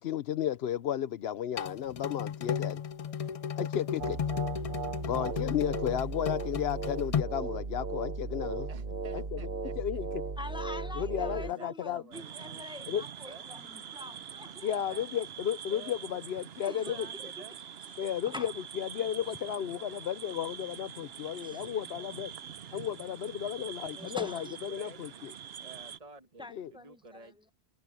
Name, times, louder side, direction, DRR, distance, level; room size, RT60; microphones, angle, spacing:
voice 1, 0.0-2.8 3.6-4.2 5.0-8.7 9.1-9.4 9.8-10.2 11.0-12.0 12.9-13.0 14.6-17.0 18.0-22.3 22.7-25.3 26.5-26.7, left 10 dB, 80° left, 0.9 m, -33 dB
sound 1, 1.6-7.2, left 7 dB, 50° left, 0.4 m, -34 dB
sound 2, 4.0-11.5, right 4 dB, 55° right, 1.3 m, -36 dB
voice 2, 8.7-10.0 11.2-12.7 13.2-13.4 14.9-15.1 15.7-16.2 16.7-17.6 23.9-25.0 25.6-27.4, right 4 dB, 40° right, 1.3 m, -51 dB
voice 3, 10.4-14.7 16.6-17.3 18.3-18.5 21.4-21.7 24.0-24.6 26.4-27.5, left 2 dB, 5° right, 0.9 m, -45 dB
sound 3, 12.1-26.0, right 8 dB, 75° right, 1.0 m, -45 dB
omnidirectional pair, 1.0 m